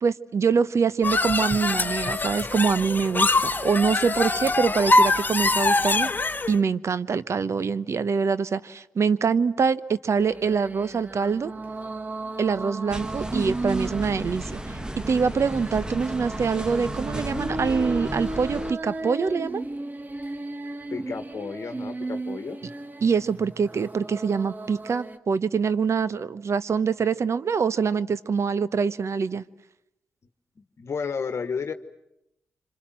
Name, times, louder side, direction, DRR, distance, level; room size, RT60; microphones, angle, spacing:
voice 1, 0.0-6.1 6.5-11.5 12.4-14.8 15.1-19.6 23.0-29.4, right 5 dB, 60° right, 16 dB, 0.9 m, -24 dB
sound 1, 1.0-6.6, left 2 dB, 35° left, 1.1 m, -23 dB
sound 2, 10.2-25.2, right 2 dB, 35° right, 1.6 m, -35 dB
sound 3, 12.9-18.7, right 1 dB, 15° right, 1.5 m, -34 dB
voice 2, 20.9-22.6 30.8-31.7, left 5 dB, 60° left, 8 dB, 1.3 m, -32 dB
26.5 x 26.5 x 7.6 m, 0.84 s
supercardioid pair, 45°, 6 cm